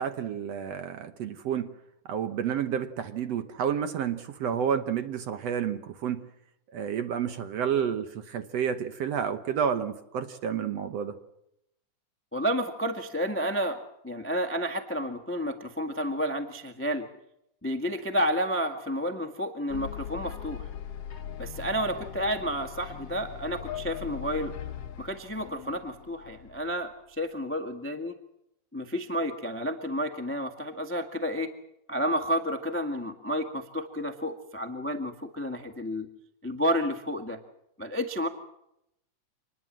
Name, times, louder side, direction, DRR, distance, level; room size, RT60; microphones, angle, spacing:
voice 1, 0.0-1.7 2.1-6.2 6.7-11.2, right 8 dB, 65° right, 9 dB, 1.8 m, -30 dB
voice 2, 12.3-13.8 14.0-17.1 17.6-20.6 21.4-24.5 25.0-28.1 28.7-31.5 31.9-36.1 36.4-37.4 37.8-38.3, equal, 10° left, 6 dB, 0.5 m, -30 dB
sound 1, 19.7-27.0, left 9 dB, 55° left, 2.0 m, -40 dB
26.0 x 20.0 x 7.6 m, 0.81 s
omnidirectional pair, 3.7 m